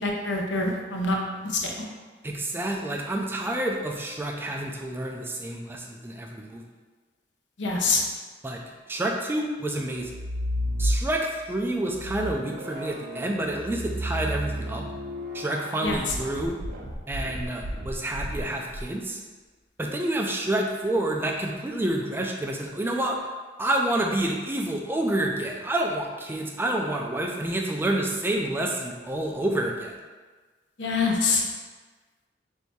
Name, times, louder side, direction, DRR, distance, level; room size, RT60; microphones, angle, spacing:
voice 1, 0.0-1.2 1.4-1.7 7.6-8.0 15.8-16.0 30.8-31.4, left 3 dB, 70° left, 0 dB, 0.6 m, -25 dB
voice 2, 2.2-6.6 8.4-8.6 8.9-10.2 10.8-14.9 15.3-16.6 17.1-19.2 19.8-23.2 23.6-29.9, right 1 dB, 10° right, 1 dB, 0.3 m, -28 dB
sound 1, 10.0-11.4 11.9-18.8, equal, 55° right, 0.6 m, -32 dB
3.2 x 2.7 x 4.5 m, 1.3 s
head